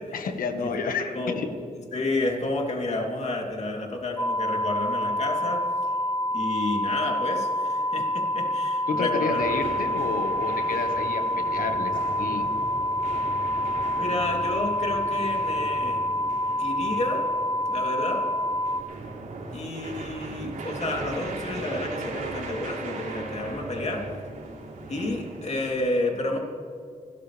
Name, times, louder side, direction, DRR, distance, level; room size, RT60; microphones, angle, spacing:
voice 1, 0.1-1.5 8.9-11.9 12.2-12.5, left 4 dB, 90° left, 7 dB, 1.5 m, -30 dB
voice 2, 0.6-5.6 6.3-9.4 14.0-16.0 16.6-17.3 17.7-18.3 19.5-24.1 24.9-26.4, left 2 dB, 50° left, 0 dB, 3.2 m, -30 dB
sound 1, 4.2-18.8, left 1 dB, 20° left, 1.4 m, -27 dB
sound 2, 9.3-25.8, right 3 dB, 85° right, 3.6 m, -38 dB
29.5 x 13.5 x 3.4 m, 2.4 s
cardioid pair, 80°, 14 cm